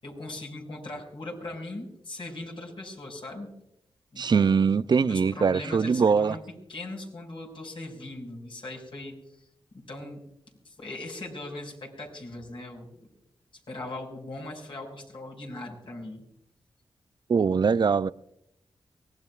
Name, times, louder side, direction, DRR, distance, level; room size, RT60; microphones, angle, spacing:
voice 1, 0.0-3.5 4.1-4.5 5.0-6.4 6.7-9.5 9.9-10.2 10.6-13.0 13.7-16.2, left 2 dB, 60° left, 5.7 m, -39 dB
voice 2, 4.2-6.4 17.3-18.1, right 5 dB, 50° right, 0.4 m, -22 dB
24.0 x 18.5 x 2.4 m
cardioid pair, 55°, 10 cm